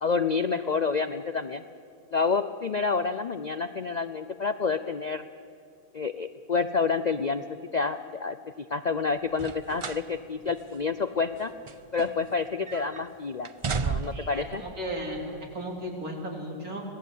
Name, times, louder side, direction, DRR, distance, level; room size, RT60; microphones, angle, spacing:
voice 1, 0.0-1.6 2.1-5.2 5.9-7.4 7.7-11.5 11.9-13.5 13.8-14.6, left 5 dB, 65° left, 10 dB, 0.4 m, -28 dB
sound 1, 9.3-10.1 10.5-10.6 11.3-12.4 12.7-13.0 13.4-14.4 15.3-15.4, right 5 dB, 40° right, 0.4 m, -33 dB
voice 2, 14.1-16.8, equal, 75° right, 0 dB, 4.0 m, -35 dB
26.0 x 18.0 x 8.4 m, 2.4 s
omnidirectional pair, 1.6 m